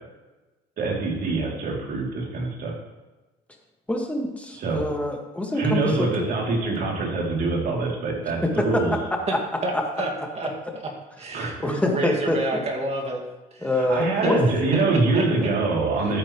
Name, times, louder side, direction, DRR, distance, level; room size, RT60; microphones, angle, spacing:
voice 1, 0.8-2.7 4.6-4.8 5.6-8.9 11.3-11.6 13.8-16.2, right 3 dB, 60° right, -2 dB, 3.1 m, -24 dB
voice 2, 3.9-6.3 8.4-8.8 11.6-12.6 13.6-14.4, left 1 dB, 10° left, 1 dB, 1.8 m, -25 dB
voice 3, 9.6-10.9 11.2-13.2 13.5-13.7 14.2-14.3 14.7-14.8 15.1-15.3, right 2 dB, 40° right, 2 dB, 2.2 m, -29 dB
13.5 x 8.8 x 3.2 m, 1.1 s
cardioid pair, 110°, 17 cm